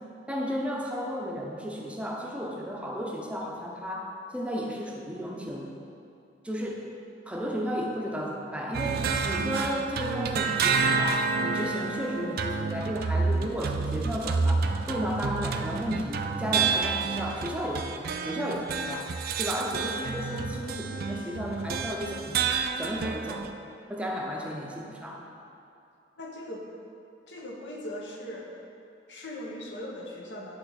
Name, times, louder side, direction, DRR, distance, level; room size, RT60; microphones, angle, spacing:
voice 1, 0.3-5.8 6.4-6.8 7.3-17.9 18.2-19.1 19.4-23.6 23.9-25.2, equal, 5° right, -1 dB, 0.6 m, -33 dB
sound 1, 8.7-23.5, right 4 dB, 55° right, 0.4 m, -29 dB
voice 2, 26.2-26.6 27.3-28.5 29.1-30.5, left 1 dB, 85° left, -1 dB, 1.1 m, -39 dB
10.5 x 3.8 x 4.0 m, 2.7 s
head